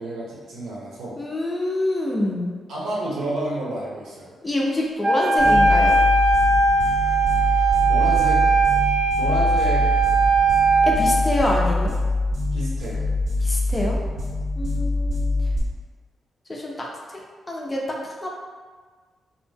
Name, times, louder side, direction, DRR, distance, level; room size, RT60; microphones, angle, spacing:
voice 1, 0.0-1.2 2.7-4.3 7.8-8.4 9.1-9.9 12.5-13.0, right 1 dB, 90° right, -6 dB, 0.8 m, -30 dB
voice 2, 1.2-2.5 4.4-6.0 10.8-11.9 13.4-14.0 14.6-15.3 16.5-16.9 17.5-18.3, left 1 dB, 15° left, -2 dB, 0.4 m, -26 dB
Wind instrument woodwind instrument, 5.0-11.0, right 3 dB, 20° right, 0.7 m, -19 dB
sound 1, 5.4-15.6, left 2 dB, 60° right, 0.6 m, -24 dB
2.6 x 2.1 x 3.2 m, 1.5 s
wide cardioid pair, 140°, 0 cm